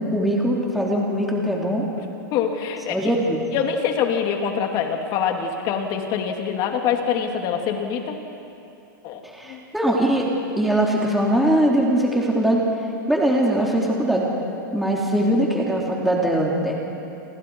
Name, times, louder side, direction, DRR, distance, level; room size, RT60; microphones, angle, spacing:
voice 1, 0.0-1.8 2.9-3.4 9.2-10.3 10.6-12.6 13.1-14.3 14.7-16.7, right 1 dB, ahead, -3 dB, 3.1 m, -21 dB
voice 2, 2.3-3.0 3.5-8.2 9.0-9.2 9.5-9.6, left 7 dB, 40° left, 3 dB, 3.0 m, -24 dB
30.0 x 26.0 x 4.8 m, 2.9 s
hypercardioid pair, 135°, 11 cm